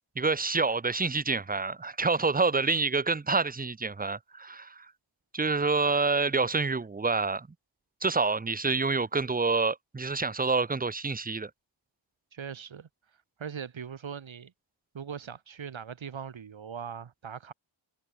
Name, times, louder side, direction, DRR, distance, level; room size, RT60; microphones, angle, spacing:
voice 1, 0.2-4.9 5.3-7.5 8.0-11.5, right 4 dB, 20° right, 0.7 m, -27 dB
voice 2, 12.3-12.9 13.4-14.5 14.9-17.5, right 7 dB, 70° right, 2.7 m, -40 dB
wide cardioid pair, 115°, 48 cm